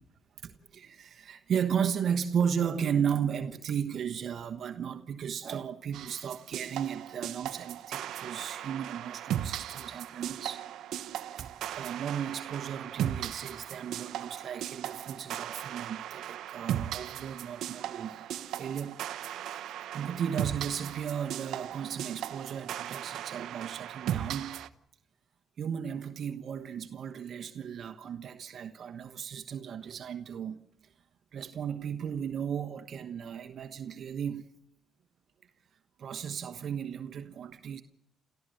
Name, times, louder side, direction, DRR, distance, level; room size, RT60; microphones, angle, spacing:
voice 1, 0.4-10.6 11.0-18.3 18.5-19.0 19.3-24.7 25.6-30.6 31.3-34.5 36.0-37.8, right 8 dB, 60° right, 1.2 m, -35 dB
sound 1, 5.9-24.7, right 11 dB, 80° right, 0.9 m, -37 dB
29.0 x 14.5 x 7.9 m
cardioid pair, 90°, 0 cm